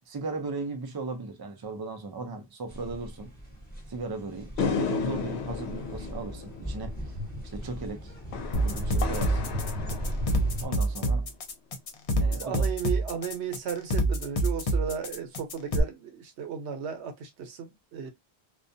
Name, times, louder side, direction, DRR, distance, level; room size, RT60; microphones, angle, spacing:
voice 1, 0.1-3.3 3.9-7.1 7.4-8.1 8.6-9.5 10.6-11.3 12.1-12.7, right 3 dB, 35° right, 0.3 m, -37 dB
sound 1, 2.7-10.7, equal, 10° left, 1.0 m, -36 dB
sound 2, 4.6-11.1, left 6 dB, 80° left, 0.9 m, -34 dB
sound 3, 8.5-15.8, right 1 dB, 45° left, 0.5 m, -26 dB
voice 2, 12.3-18.1, right 7 dB, 85° right, 1.0 m, -35 dB
2.3 x 2.1 x 2.6 m
omnidirectional pair, 1.1 m